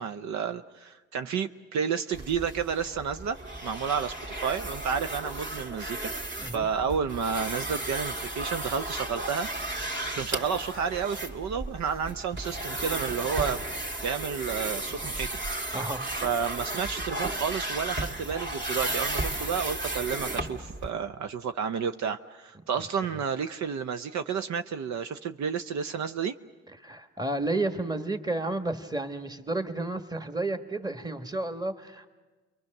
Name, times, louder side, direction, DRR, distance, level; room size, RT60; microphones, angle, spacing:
voice 1, 0.0-3.4 3.6-6.1 6.5-9.5 10.1-15.7 16.2-26.4, right 6 dB, 65° right, 9 dB, 0.7 m, -31 dB
sound 1, 2.1-20.9, right 1 dB, 40° right, 2.0 m, -34 dB
voice 2, 26.8-32.1, right 2 dB, 15° right, 8 dB, 1.4 m, -31 dB
29.0 x 22.5 x 6.6 m, 1.3 s
cardioid pair, 90°, 30 cm